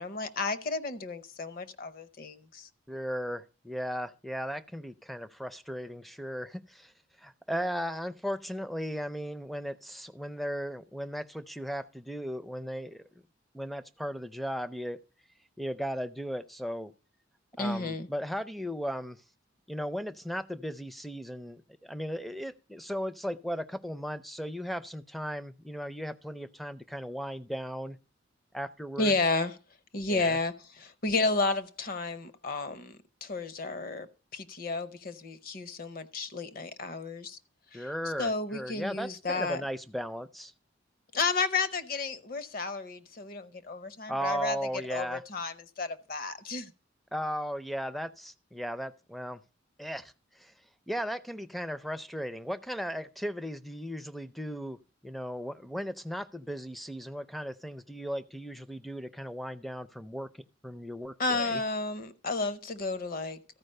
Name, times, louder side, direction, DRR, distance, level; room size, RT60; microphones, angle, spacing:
voice 1, 0.0-2.7 17.6-18.1 29.0-29.6 29.9-34.1 34.3-37.4 37.7-37.9 38.2-39.6 41.1-44.6 44.9-46.7 61.2-63.4, left 3 dB, 50° left, 0.7 m, -32 dB
voice 2, 2.9-6.9 7.2-13.0 13.5-15.0 15.6-16.9 17.6-19.2 19.7-28.0 28.5-29.2 30.1-30.4 37.7-40.5 44.1-45.2 47.1-49.4 49.8-50.5 50.9-54.8 55.0-60.3 60.6-61.6, equal, ahead, 0.4 m, -36 dB
13.5 x 4.9 x 6.5 m
head